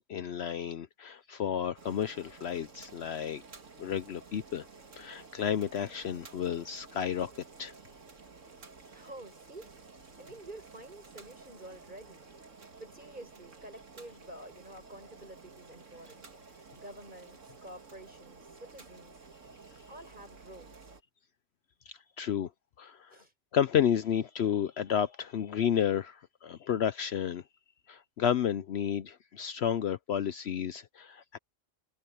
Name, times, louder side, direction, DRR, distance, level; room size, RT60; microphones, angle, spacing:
voice 1, 0.1-3.4 3.8-4.7 5.0-7.3 7.6-7.7 21.9-22.5 22.8-23.2 23.5-27.4 27.9-31.4, left 9 dB, 65° left, 0.9 m, -31 dB
Boiling, 1.8-21.0, right 4 dB, 80° right, 2.5 m, -53 dB
voice 2, 8.9-9.7 10.2-12.3 12.8-19.1 19.9-20.9 23.1-23.3, right 1 dB, 40° right, 7.5 m, -49 dB
omnidirectional pair, 1.3 m